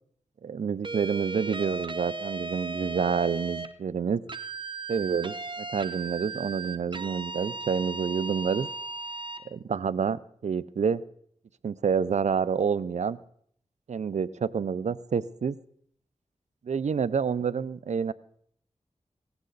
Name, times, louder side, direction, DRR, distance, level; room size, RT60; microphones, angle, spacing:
voice 1, 0.4-4.2 4.9-8.7 9.4-11.0 11.6-13.2 13.9-15.6 16.6-18.1, right 6 dB, 75° right, 18 dB, 0.5 m, -28 dB
sound 1, 0.8-3.7 4.3-9.4, right 3 dB, 40° right, 1.0 m, -36 dB
18.0 x 15.0 x 4.0 m, 0.66 s
cardioid pair, 55°, 12 cm